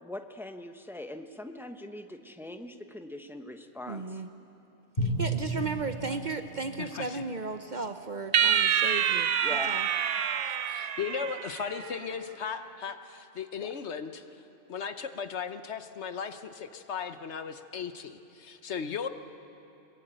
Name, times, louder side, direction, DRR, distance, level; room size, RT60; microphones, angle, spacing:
voice 1, 0.0-4.2 9.4-9.7 13.6-13.7, left 1 dB, ahead, 6 dB, 0.8 m, -42 dB
voice 2, 3.9-4.3 5.0-9.9, right 4 dB, 45° right, 8 dB, 0.8 m, -35 dB
Drum, 5.0-7.9, right 1 dB, 40° left, 3.9 m, -34 dB
voice 3, 6.8-7.2 10.7-14.2 14.7-19.1, left 6 dB, 65° left, 9 dB, 1.2 m, -36 dB
sound 1, 8.3-11.9, right 8 dB, 75° right, 1.1 m, -27 dB
22.0 x 19.5 x 9.0 m, 2.9 s
omnidirectional pair, 1.3 m